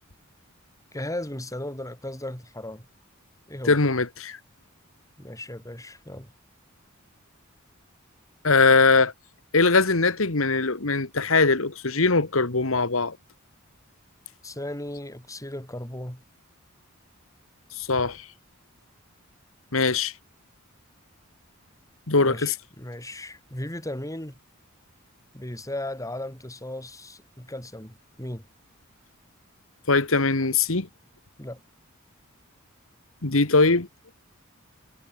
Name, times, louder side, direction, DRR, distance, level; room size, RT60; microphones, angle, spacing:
voice 1, 0.9-2.9 3.5-3.8 5.2-6.3 14.4-16.2 22.2-24.3 25.3-28.5 31.4-31.6, left 1 dB, 15° left, 4.9 m, -36 dB
voice 2, 3.7-4.4 8.4-9.1 9.5-13.2 17.8-18.2 19.7-20.1 22.1-22.5 29.9-30.9 33.2-33.9, left 3 dB, 70° left, 1.8 m, -21 dB
head